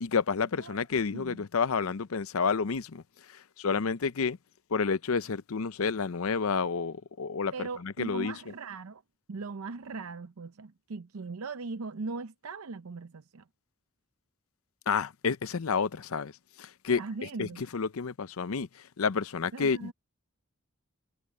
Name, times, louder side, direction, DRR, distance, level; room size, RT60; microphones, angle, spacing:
voice 1, 0.0-3.0 3.3-4.4 4.7-8.3 14.9-16.3 16.6-19.9, left 5 dB, 80° left, 0.6 m, -30 dB
voice 2, 1.1-1.4 7.5-9.0 9.3-13.4 17.0-17.7 19.5-19.9, right 4 dB, 85° right, 0.6 m, -39 dB
head